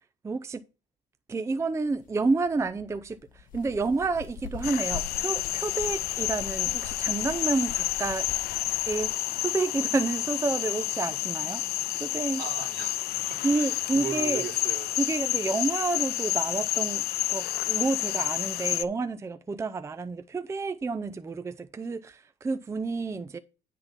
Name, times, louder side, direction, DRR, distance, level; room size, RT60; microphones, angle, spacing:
voice 1, 0.2-0.6 1.3-3.2 3.5-8.2 8.9-9.1 9.4-11.6 12.0-12.4 13.4-14.4 15.0-23.4, right 3 dB, 15° right, 0.5 m, -29 dB
sound 1, 1.9-9.1, left 7 dB, 55° left, 1.0 m, -43 dB
sound 2, 4.6-18.8, left 15 dB, 70° left, 0.4 m, -29 dB
voice 2, 12.4-14.9, right 8 dB, 70° right, 2.0 m, -38 dB
9.7 x 3.7 x 5.6 m
cardioid pair, 110°, 17 cm